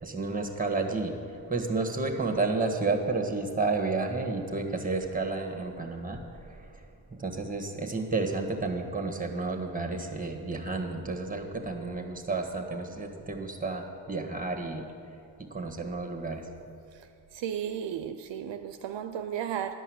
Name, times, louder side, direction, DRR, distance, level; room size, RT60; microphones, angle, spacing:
voice 1, 0.0-6.2 6.5-6.8 7.1-14.8 15.5-16.5, right 3 dB, 15° right, 4 dB, 1.5 m, -31 dB
voice 2, 17.3-19.7, right 9 dB, 65° right, 8 dB, 0.6 m, -34 dB
11.5 x 5.5 x 7.8 m, 2.6 s
cardioid pair, 50°, 47 cm